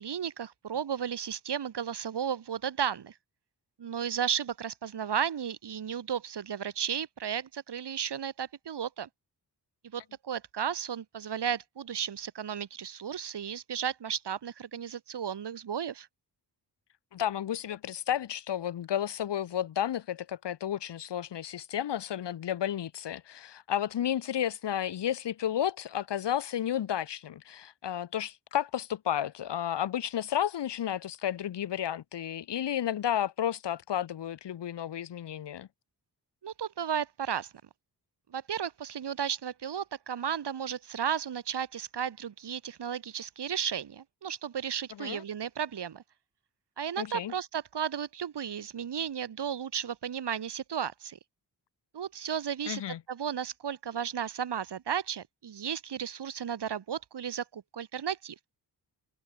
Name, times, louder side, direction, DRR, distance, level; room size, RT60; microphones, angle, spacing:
voice 1, 0.0-3.2 3.8-9.1 9.8-16.1 36.4-37.5 38.3-46.0 46.8-51.2 51.9-52.8 53.1-58.3, right 8 dB, 75° right, 6.4 m, -34 dB
voice 2, 17.1-35.7 45.0-45.2 47.0-47.3 52.7-53.0, left 10 dB, 85° left, 1.7 m, -32 dB
wide cardioid pair, 120°, 41 cm